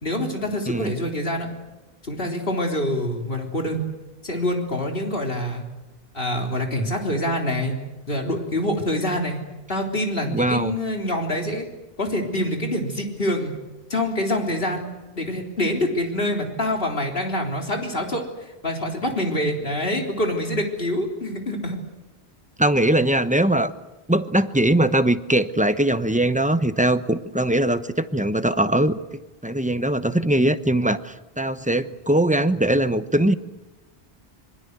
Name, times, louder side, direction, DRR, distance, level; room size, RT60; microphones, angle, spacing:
voice 1, 0.0-1.5 2.0-3.9 4.2-5.6 6.1-7.8 8.1-9.4 9.7-11.7 12.0-13.5 13.9-14.8 15.2-18.2 18.6-21.8, left 1 dB, 60° left, 2 dB, 3.9 m, -25 dB
voice 2, 10.3-10.8 22.6-23.7 24.1-33.3, right 1 dB, 10° right, 11 dB, 0.9 m, -21 dB
26.0 x 23.5 x 8.1 m, 1.0 s
omnidirectional pair, 1.1 m